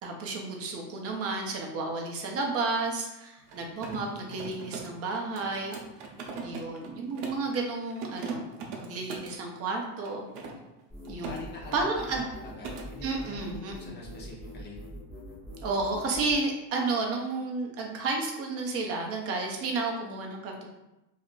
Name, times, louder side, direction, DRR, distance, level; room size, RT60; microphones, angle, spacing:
voice 1, 0.0-5.8 6.4-8.5 8.8-10.2 11.1-11.5 11.7-12.3 13.0-13.9 15.6-20.7, right 3 dB, 35° right, 1 dB, 0.5 m, -32 dB
Mechanisms, 3.4-7.5 7.9-9.4 10.0-11.4 11.7-12.0 12.3-12.9, right 4 dB, 80° right, 0.7 m, -40 dB
sound 1, 10.9-16.4, equal, 5° right, 1.2 m, -43 dB
voice 2, 11.3-12.2 12.6-13.6 13.9-14.8, left 2 dB, 25° left, -3 dB, 0.6 m, -45 dB
2.4 x 2.1 x 3.6 m, 0.95 s
cardioid pair, 130°, 46 cm